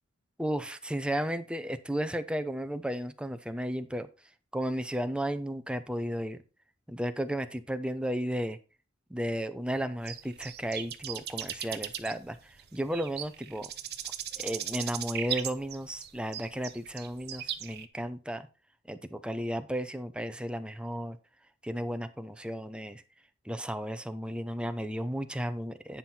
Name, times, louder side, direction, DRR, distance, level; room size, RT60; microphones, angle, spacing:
voice 1, 0.4-4.1 4.5-6.4 6.9-8.6 9.1-13.7 14.0-18.5 18.9-21.2 21.6-23.0 23.4-26.0, equal, 5° right, 9 dB, 0.7 m, -34 dB
sound 1, 10.0-17.9, right 10 dB, 55° right, 0.9 m, -38 dB
9.6 x 5.6 x 4.4 m, 0.32 s
head